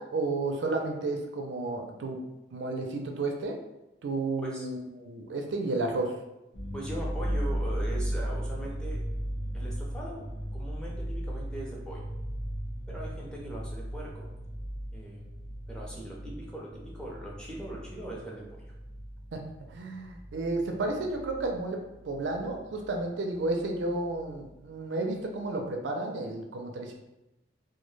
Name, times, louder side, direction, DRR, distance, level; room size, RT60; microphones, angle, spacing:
voice 1, 0.0-2.2 2.5-3.6 4.0-6.1 19.3-19.4 19.7-21.8 22.0-26.9, right 2 dB, 85° right, 2 dB, 0.4 m, -32 dB
sound 1, 6.5-21.6 21.9-23.0 23.4-23.5 23.8-24.5, equal, 80° left, 0.5 m, -36 dB
voice 2, 6.7-9.0 9.5-10.3 10.5-12.0 12.9-14.2 14.9-15.2 15.7-18.4, right 1 dB, 5° left, -4 dB, 0.5 m, -40 dB
2.2 x 2.1 x 3.1 m, 0.94 s
head